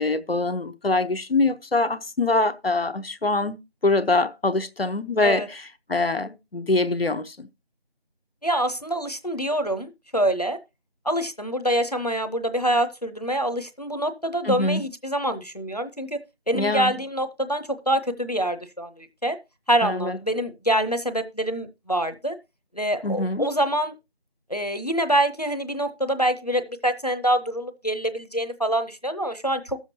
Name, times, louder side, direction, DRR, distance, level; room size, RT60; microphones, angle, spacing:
voice 1, 0.0-3.6 3.8-7.5 14.4-14.8 16.5-16.9 19.8-20.2 23.0-23.5, left 2 dB, 70° left, 0.9 m, -24 dB
voice 2, 8.4-10.6 11.0-16.2 16.5-19.4 19.7-22.4 22.7-23.9 24.5-29.8, right 1 dB, 40° left, 0.8 m, -25 dB
18.5 x 7.2 x 2.8 m
figure-of-eight pair, 175°, 30 cm